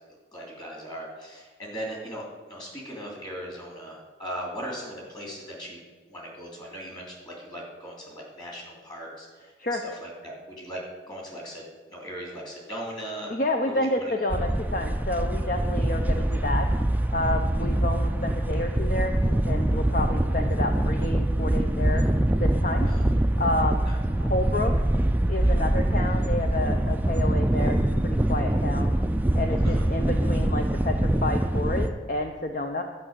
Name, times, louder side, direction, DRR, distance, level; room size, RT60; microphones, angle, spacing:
voice 1, 0.3-5.8 6.1-10.8 11.1-11.6 11.9-13.3 13.6-14.3 22.8-23.0 23.8-24.0 29.6-29.9, equal, 25° left, -2 dB, 3.1 m, -38 dB
voice 2, 13.3-16.7 17.1-19.2 19.5-22.1 22.4-22.9 23.4-23.9 24.2-24.7 25.3-28.9 29.4-32.8, left 2 dB, 45° left, 4 dB, 0.6 m, -29 dB
sound 1, 14.3-31.9, right 1 dB, 10° right, 0.4 m, -24 dB
11.0 x 5.8 x 8.8 m, 1.4 s
head